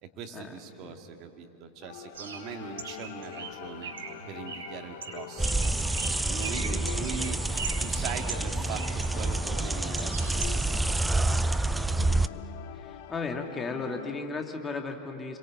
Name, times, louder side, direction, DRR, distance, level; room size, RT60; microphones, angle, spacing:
voice 1, 0.0-3.9 4.3-5.8 6.3-7.4 7.8-11.9, right 6 dB, 40° right, 5 dB, 2.3 m, -41 dB
sound 1, 1.8-14.3, left 12 dB, 50° left, 0.9 m, -44 dB
Bird, 2.1-10.9, right 5 dB, 65° right, 2.4 m, -42 dB
sound 2, 5.4-12.3, right 2 dB, 5° right, 0.5 m, -28 dB
voice 2, 11.9-12.4 12.7-15.4, left 4 dB, 15° left, 3 dB, 2.5 m, -36 dB
30.0 x 22.5 x 8.6 m, 2.8 s
figure-of-eight pair, 90°, 0 cm